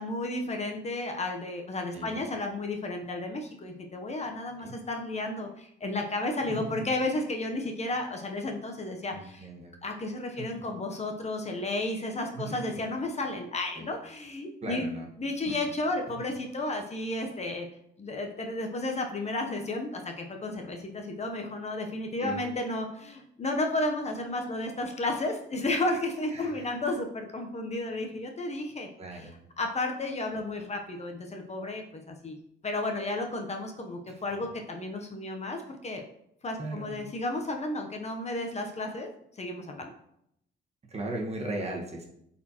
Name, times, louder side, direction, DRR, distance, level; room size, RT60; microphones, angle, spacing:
voice 1, 0.0-9.5 9.8-14.8 15.2-17.7 18.0-29.3 29.6-32.4 32.6-36.0 36.4-39.9, left 2 dB, 35° left, 3 dB, 0.8 m, -33 dB
voice 2, 9.1-9.7 10.4-10.6 12.3-12.9 13.7-13.9 14.6-15.1 15.4-15.7 22.2-22.4 26.3-26.7 29.0-29.3 34.1-34.2 36.6-37.0 40.9-42.1, right 2 dB, 30° right, 0 dB, 1.5 m, -37 dB
8.1 x 4.3 x 2.9 m, 0.75 s
cardioid pair, 90°, 20 cm